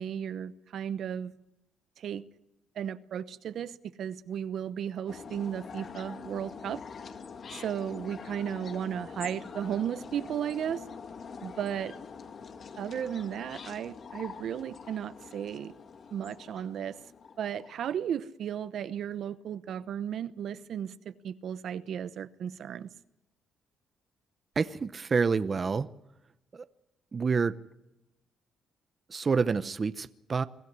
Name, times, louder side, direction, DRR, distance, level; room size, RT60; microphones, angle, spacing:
voice 1, 0.0-1.3 2.0-2.3 2.7-6.8 7.5-10.8 11.4-11.9 12.8-15.7 16.1-17.0 17.4-22.9, right 9 dB, 70° right, 0.9 m, -35 dB
sound 1, 5.1-17.9, left 5 dB, 50° left, 1.9 m, -45 dB
voice 2, 24.6-25.9 26.5-26.7 27.1-27.5 29.1-30.5, right 5 dB, 35° right, 0.8 m, -28 dB
24.0 x 15.0 x 9.6 m
cardioid pair, 90°, 0 cm